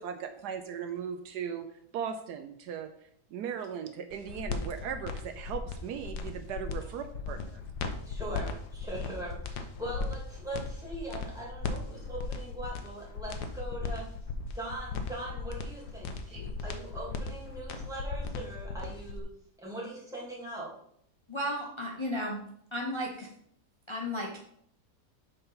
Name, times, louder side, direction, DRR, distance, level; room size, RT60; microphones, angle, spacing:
voice 1, 0.0-1.7 1.9-2.9 3.3-7.6, right 7 dB, 75° right, 8 dB, 1.1 m, -38 dB
sound 1, 4.1-19.2, left 4 dB, 75° left, 1.3 m, -37 dB
voice 2, 8.1-14.1 14.5-19.2 19.6-20.7, right 1 dB, ahead, -6 dB, 2.4 m, -41 dB
voice 3, 21.3-22.4 22.7-23.3 23.9-24.4, equal, 40° left, -1 dB, 0.4 m, -34 dB
6.8 x 3.9 x 5.5 m, 0.68 s
omnidirectional pair, 1.8 m